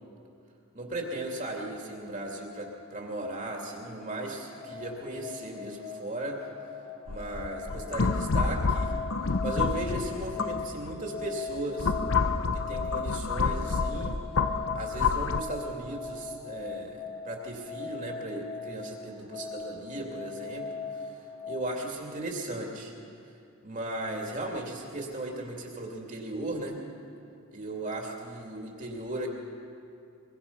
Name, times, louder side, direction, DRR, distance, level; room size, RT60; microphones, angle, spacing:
voice 1, 0.7-6.4 7.1-8.9 9.4-11.9 12.5-14.2 14.7-20.7 20.9-21.2 21.5-22.9 23.6-26.8 27.5-29.3, right 1 dB, 35° right, 0 dB, 2.8 m, -36 dB
sound 1, 3.7-21.8, left 5 dB, 40° left, 2.5 m, -40 dB
sound 2, 7.1-11.0 11.5-15.4, left 4 dB, 65° left, 0.8 m, -28 dB
23.5 x 23.0 x 5.6 m, 2.5 s
head